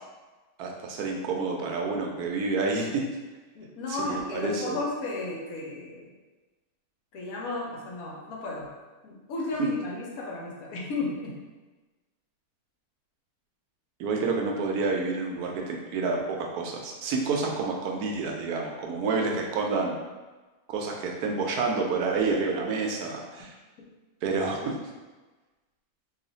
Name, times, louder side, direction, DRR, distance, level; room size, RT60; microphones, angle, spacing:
voice 1, 0.6-3.0 3.9-4.8 9.6-9.7 14.0-20.0 20.7-23.5 24.2-24.8, right 4 dB, 85° right, 1 dB, 1.1 m, -29 dB
voice 2, 3.5-6.1 7.1-8.7 9.0-11.4 24.6-24.7, left 3 dB, 70° left, -2 dB, 1.1 m, -34 dB
2.8 x 2.4 x 3.9 m, 1.2 s
omnidirectional pair, 1.6 m